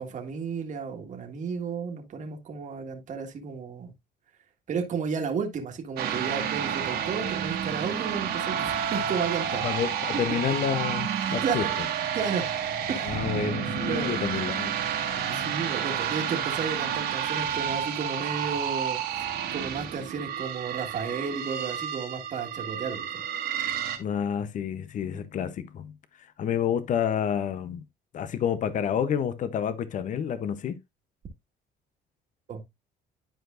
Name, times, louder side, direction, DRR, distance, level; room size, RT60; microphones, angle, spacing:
voice 1, 0.0-3.9 4.7-9.6 10.3-10.4 11.4-11.8 12.1-12.4 12.9-13.3 13.9-14.1 15.3-23.0 25.1-25.3 32.5-32.6, right 5 dB, 45° right, 1.7 m, -33 dB
sound 1, 6.0-24.0, right 8 dB, 70° right, 1.7 m, -30 dB
voice 2, 9.6-11.7 13.1-14.7 24.0-25.9 26.4-27.8 28.1-30.8, left 8 dB, 50° left, 0.7 m, -29 dB
10.5 x 4.7 x 2.5 m
cardioid pair, 110°, 17 cm